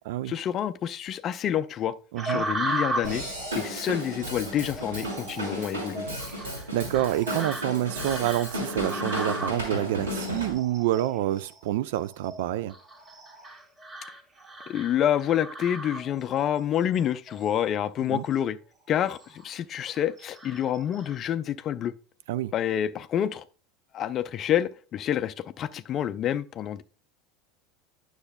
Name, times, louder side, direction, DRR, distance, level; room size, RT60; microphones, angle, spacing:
voice 1, 0.3-2.0 2.2-3.2 3.5-6.1 14.7-18.6 18.9-21.9 22.5-23.4 23.9-26.8, left 10 dB, 35° left, 0.4 m, -28 dB
voice 2, 2.1-2.5 6.4-12.8 18.1-18.2 22.3-22.5, right 13 dB, 60° right, 0.3 m, -28 dB
sound 1, 2.2-16.5 16.9-17.6 18.1-18.3 18.8-19.5 19.9-21.2, right 2 dB, 25° right, 1.8 m, -37 dB
Drum kit / Drum, 3.0-10.5, equal, 80° right, 3.0 m, -34 dB
9.7 x 6.2 x 2.2 m
figure-of-eight pair, 75°, 0 cm